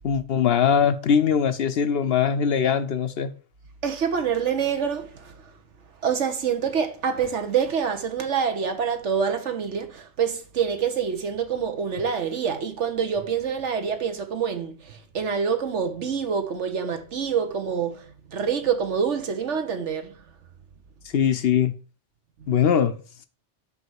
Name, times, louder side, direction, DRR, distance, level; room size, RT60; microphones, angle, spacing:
voice 1, 0.0-3.3 21.1-21.7 22.5-23.0, left 7 dB, 60° left, 0.8 m, -21 dB
voice 2, 3.8-5.3 6.0-20.1 22.4-22.5, right 7 dB, 75° right, 1.4 m, -26 dB
5.5 x 5.3 x 6.3 m
omnidirectional pair, 1.2 m